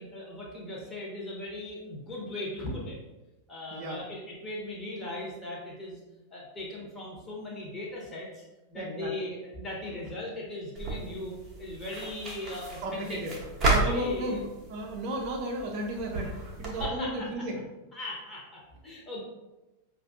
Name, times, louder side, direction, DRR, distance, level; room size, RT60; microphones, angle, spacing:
voice 1, 0.0-3.0 3.5-6.0 6.3-8.4 8.7-13.2 13.8-14.4 16.8-17.3 17.9-19.2, left 1 dB, 20° left, -4 dB, 1.2 m, -38 dB
voice 2, 3.7-4.0 8.7-9.1 12.8-13.4 13.6-17.6, right 1 dB, 40° right, 0 dB, 0.6 m, -34 dB
sound 1, 10.8-16.8, right 2 dB, 25° right, 0.9 m, -33 dB
5.0 x 2.5 x 2.6 m, 1.0 s
figure-of-eight pair, 90°, 0 cm